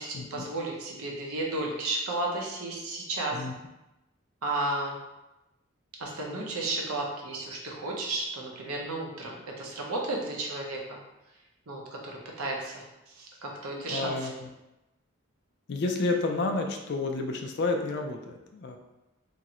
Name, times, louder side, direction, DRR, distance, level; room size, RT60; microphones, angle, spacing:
voice 1, 0.0-3.4 4.4-5.0 6.0-11.0 11.7-14.3, right 2 dB, 85° right, -1 dB, 0.7 m, -33 dB
voice 2, 13.9-14.5 15.7-18.8, left 3 dB, 50° left, 4 dB, 0.3 m, -30 dB
3.0 x 2.5 x 2.8 m, 0.97 s
head